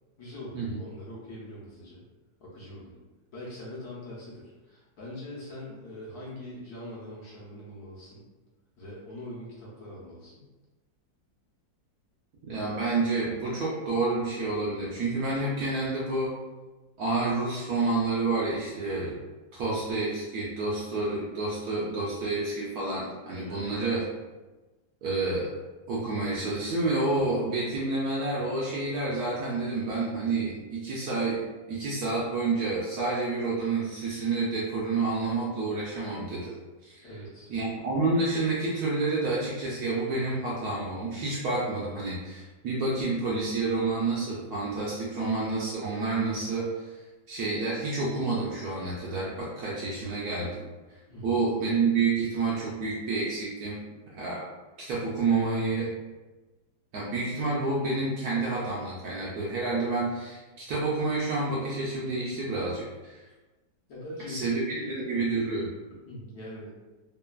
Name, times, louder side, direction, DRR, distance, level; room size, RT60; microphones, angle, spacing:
voice 1, 0.2-2.0 2.4-3.0 3.3-8.2 8.8-10.4 23.4-23.7 37.0-37.5 51.1-51.4 63.9-65.0 66.1-66.7, left 1 dB, 65° left, -6 dB, 1.0 m, -42 dB
voice 2, 12.5-16.3 17.0-19.2 19.5-24.0 25.0-25.5 25.9-31.4 31.7-36.5 36.8-37.1 37.5-46.9 47.3-50.5 51.2-53.8 54.1-54.4 54.9-55.9 56.9-63.2 64.3-65.7, right 3 dB, 70° right, -6 dB, 0.9 m, -29 dB
3.2 x 2.1 x 2.2 m, 1.2 s
omnidirectional pair, 2.0 m